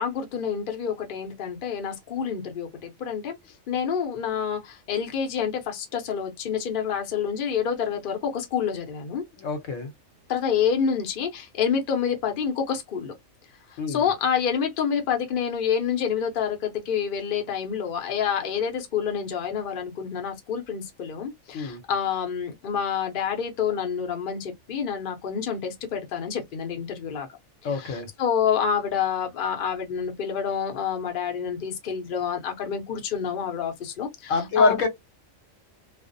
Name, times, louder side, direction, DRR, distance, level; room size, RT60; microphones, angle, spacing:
voice 1, 0.0-3.3 3.7-9.2 10.3-13.1 13.7-27.3 27.6-34.8, left 7 dB, 50° left, 0.7 m, -28 dB
voice 2, 9.4-9.9 13.8-14.1 21.5-21.8 27.6-28.1 34.3-34.9, left 4 dB, 75° left, 1.1 m, -25 dB
2.4 x 2.0 x 2.5 m
omnidirectional pair, 1.4 m